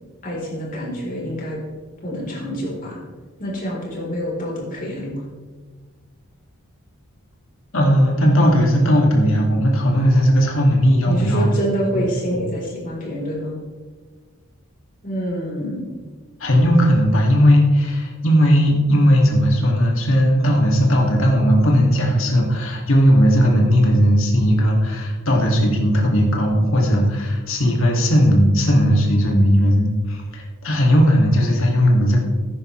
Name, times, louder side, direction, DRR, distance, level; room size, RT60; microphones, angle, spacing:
voice 1, 0.2-1.6 2.0-3.0 3.4-5.2 11.0-13.6 15.0-15.9, equal, 40° left, -4 dB, 3.9 m, -26 dB
voice 2, 7.7-11.5 11.9-12.0 16.4-32.2, equal, 65° left, -1 dB, 2.2 m, -17 dB
14.5 x 10.0 x 3.2 m, 1.4 s
head